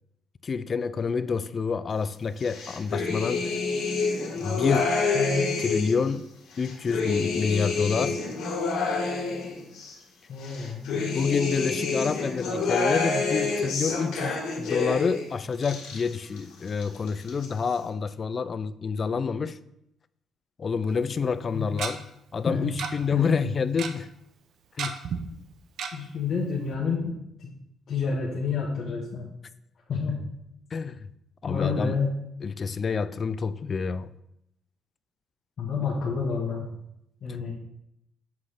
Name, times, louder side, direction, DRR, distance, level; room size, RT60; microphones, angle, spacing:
voice 1, 0.4-3.5 4.4-5.0 5.6-6.3 6.6-8.2 11.1-19.6 20.6-22.0 22.3-24.1 24.8-25.0 30.7-31.0 31.4-32.0 32.4-34.1, left 5 dB, 35° left, 0.3 m, -28 dB
sound 1, 2.4-6.0 6.5-9.9 10.4-15.2 15.5-16.4 16.7-17.5, left 4 dB, 80° left, 1.7 m, -28 dB
voice 2, 5.1-5.4 10.3-11.2 21.5-21.7 22.5-22.8 23.1-23.4 23.7-23.8 25.9-27.6 27.9-29.3 29.9-30.2 31.5-32.1 35.6-36.7 37.2-37.5, left 5 dB, 50° left, 1.1 m, -29 dB
Tick-tock, 20.9-21.0 21.8-21.9 22.8-22.9 23.2-23.3 23.5-23.9 24.8-25.2 25.8-25.9 26.3-26.4 26.7-26.8, right 7 dB, 65° right, 0.7 m, -31 dB
7.5 x 3.2 x 5.7 m
cardioid pair, 130°, 0 cm